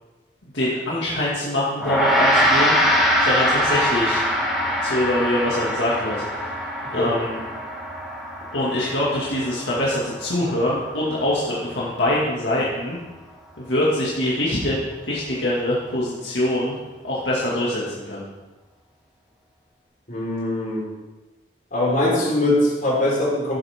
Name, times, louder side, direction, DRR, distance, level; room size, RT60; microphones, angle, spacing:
voice 1, 0.4-2.8 3.2-4.2 4.8-6.6 6.9-7.4 8.5-13.0 13.6-14.8 15.1-16.7 17.0-18.2, left 1 dB, 80° left, -6 dB, 2.2 m, -24 dB
Gong, 1.8-11.3, equal, ahead, 2.1 m, -23 dB
voice 2, 20.1-20.8 21.7-23.6, left 1 dB, 50° left, -5 dB, 4.2 m, -21 dB
15.0 x 8.3 x 3.7 m, 1.2 s
head